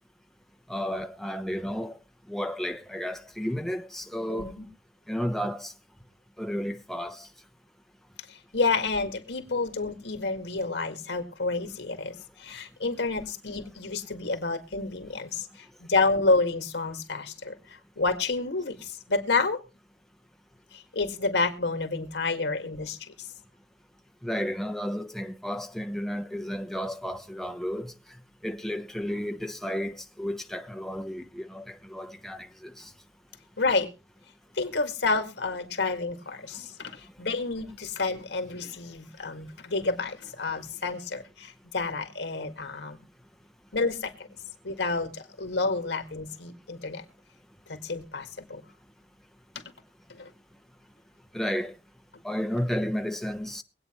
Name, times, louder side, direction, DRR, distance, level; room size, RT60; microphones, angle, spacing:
voice 1, 0.7-2.0 2.3-4.5 5.1-5.7 6.4-7.3 24.2-27.9 28.4-32.9 51.3-51.7 52.2-53.6, equal, ahead, 0.9 m, -32 dB
voice 2, 4.3-4.6 8.3-15.5 15.8-17.6 18.0-19.6 20.7-23.3 33.6-33.9 34.6-43.0 43.7-44.3 44.6-47.0 47.7-48.6 50.2-50.3, left 3 dB, 80° left, 2.0 m, -29 dB
23.0 x 8.9 x 3.1 m
head